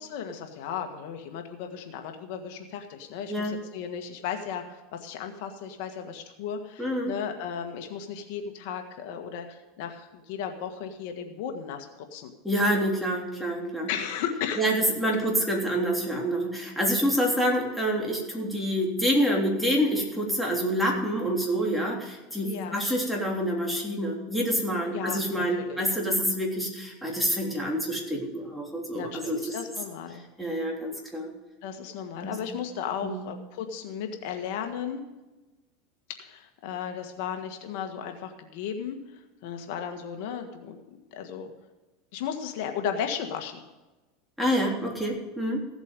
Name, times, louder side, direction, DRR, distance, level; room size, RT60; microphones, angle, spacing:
voice 1, 0.0-11.9 12.1-12.3 13.9-14.6 22.4-22.8 24.9-25.2 25.6-25.8 28.9-30.2 31.6-35.0 36.2-40.8 41.1-41.5 42.1-43.6, left 8 dB, 65° left, 5 dB, 1.6 m, -35 dB
voice 2, 6.8-7.1 12.4-13.9 14.6-29.5 30.4-31.3 32.2-32.3 33.0-33.2 44.4-45.6, equal, ahead, -2 dB, 3.4 m, -27 dB
16.0 x 8.1 x 5.3 m, 1.1 s
supercardioid pair, 125°, 0 cm